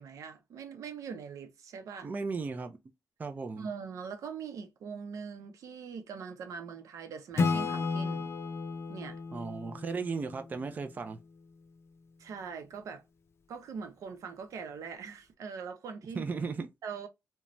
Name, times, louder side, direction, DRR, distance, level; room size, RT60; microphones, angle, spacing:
voice 1, 0.0-2.1 3.6-8.3 8.9-9.2 12.2-13.0 13.5-16.2 16.8-17.1, right 6 dB, 85° right, 0.6 m, -42 dB
voice 2, 2.0-2.8 3.2-3.7 9.3-11.2 16.2-16.7, right 4 dB, 30° right, 0.4 m, -36 dB
Acoustic guitar / Strum, 7.4-10.9, left 4 dB, 50° left, 0.4 m, -33 dB
2.9 x 2.2 x 2.5 m
wide cardioid pair, 120°, 6 cm